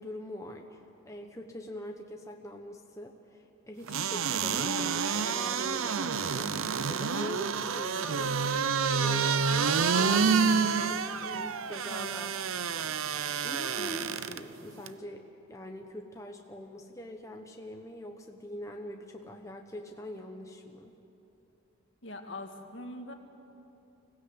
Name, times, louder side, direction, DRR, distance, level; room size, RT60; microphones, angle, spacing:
voice 1, 0.0-12.4 12.7-15.2 15.5-20.9, left 1 dB, 15° left, 2 dB, 0.9 m, -44 dB
sound 1, 3.9-14.4 14.9-15.0, right 5 dB, 75° right, 0.7 m, -28 dB
voice 2, 22.0-23.1, left 2 dB, 60° left, 5 dB, 1.8 m, -42 dB
25.5 x 16.5 x 8.0 m, 2.9 s
head